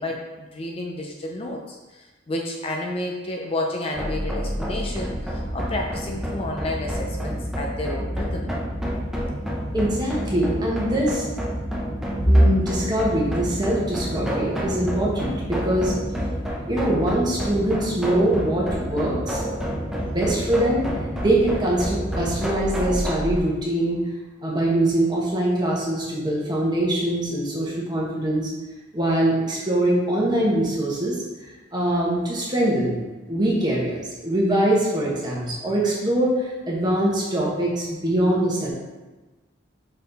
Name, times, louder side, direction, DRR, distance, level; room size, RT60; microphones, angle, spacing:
voice 1, 0.0-8.5, left 1 dB, 30° left, 1 dB, 0.4 m, -31 dB
sound 1, 3.9-23.4, equal, 5° right, 0.7 m, -29 dB
voice 2, 9.7-11.3 12.2-15.9 16.7-19.5 20.0-20.8 21.2-24.0 24.4-28.5 28.9-31.2 31.7-33.0 33.3-38.7, right 1 dB, 20° right, -4 dB, 1.3 m, -22 dB
5.6 x 4.2 x 4.0 m, 1.2 s
head